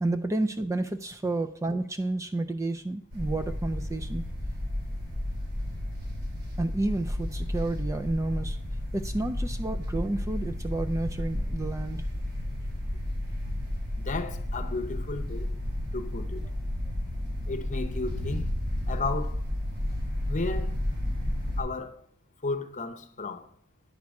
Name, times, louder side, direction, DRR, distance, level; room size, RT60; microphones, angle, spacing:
voice 1, 0.0-4.2 6.6-8.6 8.9-12.1, right 2 dB, 15° right, 0.3 m, -30 dB
sound 1, 3.1-21.6, left 1 dB, 85° right, 3.6 m, -32 dB
voice 2, 14.0-15.5 15.9-16.4 17.5-18.5 18.9-19.4 20.3-20.8 21.6-22.0 22.4-23.5, left 3 dB, 35° left, 0.8 m, -33 dB
9.4 x 4.7 x 6.4 m
head